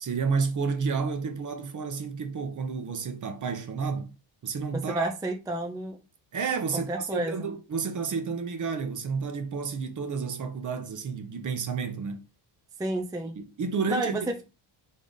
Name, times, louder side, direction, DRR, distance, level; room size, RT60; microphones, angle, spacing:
voice 1, 0.0-4.1 4.4-5.1 6.3-12.2 13.4-14.2, right 5 dB, 40° right, 0.8 m, -31 dB
voice 2, 4.7-6.0 6.7-7.5 12.8-13.4 13.9-14.4, right 1 dB, 10° right, 0.4 m, -30 dB
3.8 x 3.6 x 3.9 m
cardioid pair, 125°, 48 cm